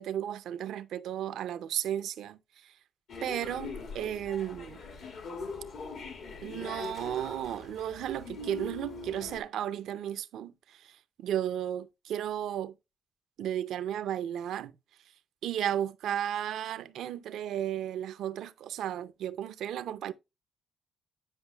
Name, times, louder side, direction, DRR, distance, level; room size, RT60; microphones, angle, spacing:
voice 1, 0.0-2.8 3.2-4.8 6.4-12.8 13.4-14.8 15.4-20.1, right 10 dB, 80° right, 0.6 m, -34 dB
train platform railway station public announcement, 3.1-9.4, left 3 dB, 75° left, 2.0 m, -42 dB
9.8 x 5.5 x 2.3 m
cardioid pair, 90°, 0 cm